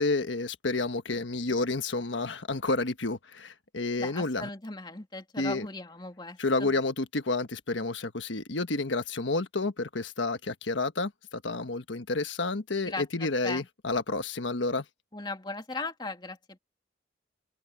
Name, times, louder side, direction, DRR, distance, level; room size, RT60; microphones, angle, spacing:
voice 1, 0.0-4.5 5.4-5.7 6.4-14.8, left 3 dB, 85° left, 1.4 m, -30 dB
voice 2, 4.0-6.7 12.8-13.7 15.1-16.6, left 3 dB, 25° left, 2.4 m, -38 dB
head